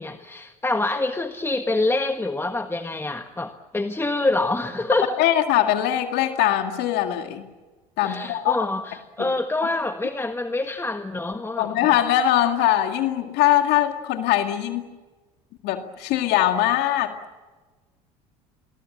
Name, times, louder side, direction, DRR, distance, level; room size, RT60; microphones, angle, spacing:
voice 1, 0.0-5.1 8.0-11.7, left 2 dB, 10° left, 7 dB, 1.5 m, -26 dB
voice 2, 5.2-7.5 8.0-8.6 9.2-9.3 11.6-14.9 15.6-17.1, left 12 dB, 65° left, 6 dB, 2.2 m, -21 dB
28.0 x 22.5 x 7.5 m, 1.3 s
hypercardioid pair, 70°, 19 cm